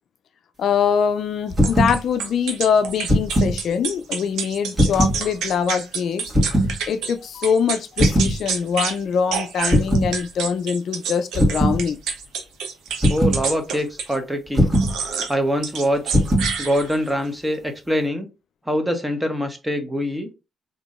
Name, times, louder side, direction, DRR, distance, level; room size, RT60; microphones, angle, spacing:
voice 1, 0.6-6.3 6.9-12.0, left 7 dB, 65° left, 0.3 m, -23 dB
sound 1, 1.5-2.0 2.9-3.6 4.7-5.2 6.3-6.7 8.0-8.4 9.7-10.1 11.3-11.8 13.0-13.4 14.5-14.9 16.1-16.5, equal, 25° right, 1.5 m, -18 dB
sound 2, 1.6-7.1 7.4-9.0 9.3-14.2 14.7-15.3 15.6-17.1, right 6 dB, 85° right, 0.7 m, -28 dB
voice 2, 13.1-14.7 15.3-16.1 16.6-18.3 18.7-20.3, equal, 10° right, 0.9 m, -24 dB
3.6 x 2.7 x 2.4 m
cardioid pair, 90°, 0 cm